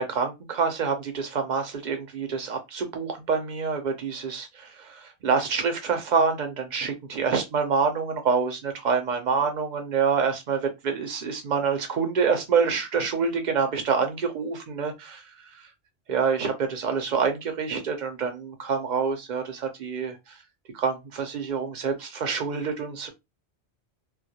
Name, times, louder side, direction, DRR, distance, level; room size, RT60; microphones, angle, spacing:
voice 1, 0.0-15.7 16.1-20.4 20.7-23.1, right 5 dB, 50° right, 0.6 m, -27 dB
2.3 x 2.1 x 2.7 m
omnidirectional pair, 1.1 m